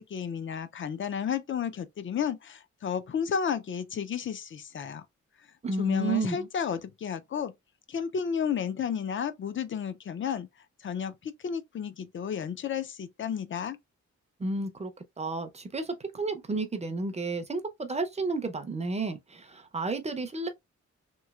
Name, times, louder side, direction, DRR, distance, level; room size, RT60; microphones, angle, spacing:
voice 1, 0.0-5.0 5.8-7.5 7.9-10.5 10.8-13.8, left 7 dB, 40° left, 0.4 m, -32 dB
voice 2, 5.6-6.5 14.4-14.9 15.2-20.5, right 3 dB, 20° right, 0.5 m, -32 dB
3.1 x 3.0 x 2.3 m
wide cardioid pair, 165°, 30 cm